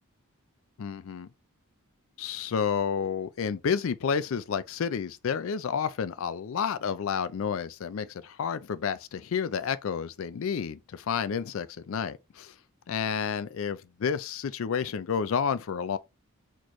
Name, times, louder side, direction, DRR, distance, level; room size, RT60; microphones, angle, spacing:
voice 1, 0.8-1.3 2.2-12.5 12.9-16.0, left 6 dB, 65° left, 0.4 m, -30 dB
4.2 x 3.1 x 3.0 m
head